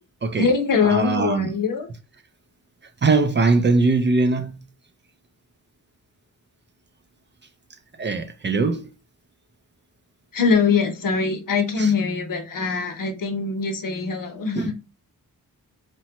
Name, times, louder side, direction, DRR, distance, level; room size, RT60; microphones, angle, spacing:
voice 1, 0.4-1.9 10.3-14.7, left 5 dB, 65° left, 0.8 m, -22 dB
voice 2, 0.9-1.5 3.0-4.6 8.0-8.8 14.6-14.7, right 3 dB, 35° right, 0.4 m, -20 dB
3.0 x 2.2 x 2.8 m
cardioid pair, 85°, 35 cm